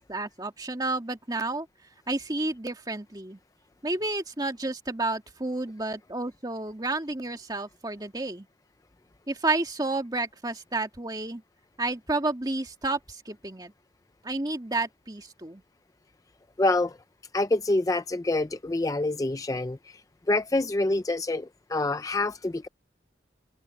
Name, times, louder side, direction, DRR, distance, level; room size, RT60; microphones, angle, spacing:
voice 1, 0.0-1.7 2.1-3.4 3.8-8.5 9.3-11.4 11.8-13.7 14.2-15.6, right 2 dB, 20° right, 1.9 m, -31 dB
voice 2, 16.6-17.0 17.3-19.8 20.3-22.7, left 2 dB, 20° left, 0.4 m, -26 dB
open air
head